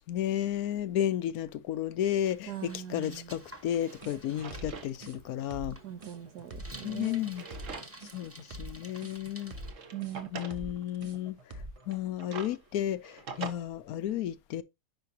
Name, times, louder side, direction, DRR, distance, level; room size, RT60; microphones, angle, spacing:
voice 1, 0.1-5.8 6.8-7.4 8.1-9.5 10.3-11.4 11.9-14.6, left 11 dB, 70° left, 1.0 m, -32 dB
Bicycle, 2.2-9.7, right 1 dB, 10° right, 1.0 m, -52 dB
voice 2, 2.5-3.3 5.8-7.3 9.9-10.6, right 11 dB, 70° right, 1.6 m, -41 dB
Drawer open or close, 2.9-3.0 3.5-4.9 5.3-5.4 6.4-8.1 8.6-8.7 9.4-10.6 11.8-13.5, right 5 dB, 50° right, 1.4 m, -44 dB
sound 1, 4.0-11.9, right 1 dB, 30° right, 0.6 m, -44 dB
10.5 x 5.4 x 2.8 m
omnidirectional pair, 1.8 m